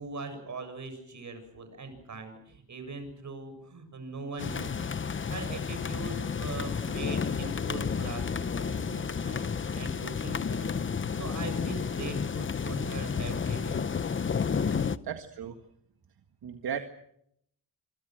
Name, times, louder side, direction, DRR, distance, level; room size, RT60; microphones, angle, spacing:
voice 1, 0.0-5.0 5.3-10.7 11.1-13.8, right 3 dB, 45° right, 8 dB, 7.5 m, -41 dB
sound 1, 4.4-15.0, left 6 dB, 30° left, 0.9 m, -31 dB
voice 2, 15.0-15.6 16.4-16.8, right 8 dB, 65° right, 6 dB, 1.9 m, -35 dB
26.5 x 25.5 x 6.3 m, 0.73 s
wide cardioid pair, 120°, 39 cm